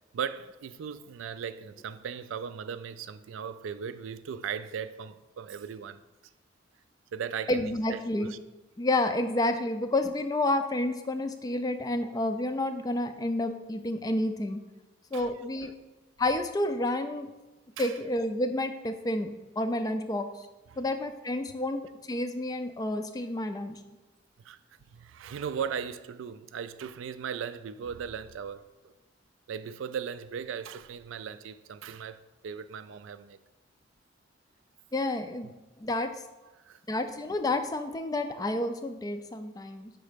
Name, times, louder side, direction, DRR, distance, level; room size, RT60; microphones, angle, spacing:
voice 1, 0.1-6.0 7.1-8.4 15.1-15.3 15.7-15.8 17.8-18.0 20.7-20.8 24.4-24.6 24.9-28.9 29.5-33.4 35.4-35.5 36.5-36.8, right 7 dB, 75° right, 0.3 m, -38 dB
voice 2, 7.5-8.3 8.8-14.6 15.1-15.7 16.2-17.3 17.8-20.3 20.8-23.8 34.9-35.5 35.8-36.1 36.9-39.9, left 1 dB, 20° left, 0.3 m, -30 dB
5.4 x 3.9 x 5.0 m
head